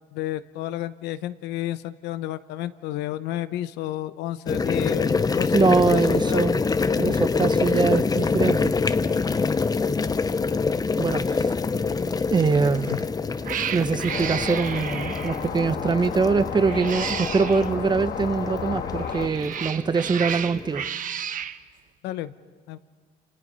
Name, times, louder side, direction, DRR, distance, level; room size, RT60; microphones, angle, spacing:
voice 1, 0.1-6.6 12.9-13.0 22.0-22.3 22.7-22.8, left 14 dB, 90° left, 13 dB, 0.9 m, -31 dB
sound 1, 4.5-20.9, left 4 dB, 20° left, 0.7 m, -26 dB
voice 2, 5.5-6.6 7.0-8.7 11.0-11.5 12.3-12.9 13.7-20.8, right 5 dB, 25° right, 14 dB, 0.8 m, -23 dB
Cat, 12.7-13.0 13.4-15.5 16.6-17.7 19.0-21.6, right 9 dB, 50° right, 1.1 m, -32 dB
sound 2, 14.1-19.3, left 7 dB, 65° left, 1.8 m, -32 dB
28.5 x 28.5 x 5.6 m, 1.5 s
cardioid pair, 110°, 17 cm